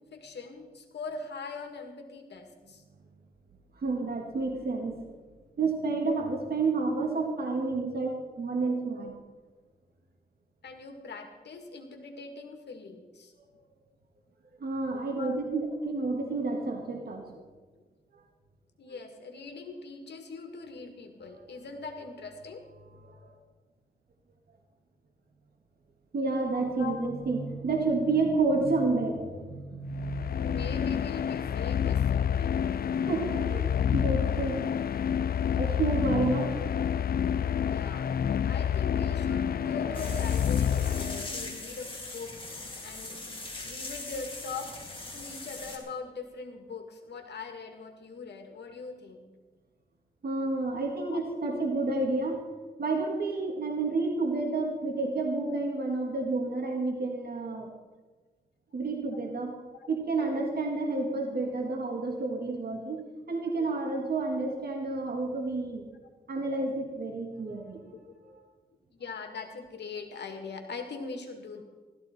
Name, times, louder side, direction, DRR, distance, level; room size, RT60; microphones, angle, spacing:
voice 1, 0.0-2.8 7.9-8.2 8.9-9.1 10.6-13.3 15.1-15.6 18.8-22.6 26.7-27.2 30.3-32.6 34.4-34.6 36.6-36.8 37.6-38.2 38.4-42.4 42.8-43.4 43.6-44.7 45.1-49.3 51.1-51.6 59.1-59.2 59.7-59.9 60.2-60.5 63.6-63.7 67.9-68.0 68.9-71.6, left 4 dB, 80° left, 5 dB, 1.9 m, -41 dB
voice 2, 3.7-5.0 5.6-8.1 8.4-9.1 13.4-13.5 14.6-17.4 23.1-23.3 26.1-30.7 33.1-34.6 35.6-36.6 50.2-52.4 52.8-57.7 58.7-59.5 59.9-63.0 63.3-65.8 66.3-67.8 68.2-68.4, right 3 dB, 65° right, 1 dB, 2.1 m, -30 dB
sound 1, 29.9-41.6, left 8 dB, 60° left, 0.5 m, -28 dB
sound 2, 39.9-45.8, left 2 dB, 30° left, 3.1 m, -41 dB
16.0 x 13.5 x 4.4 m, 1.4 s
cardioid pair, 85°, 17 cm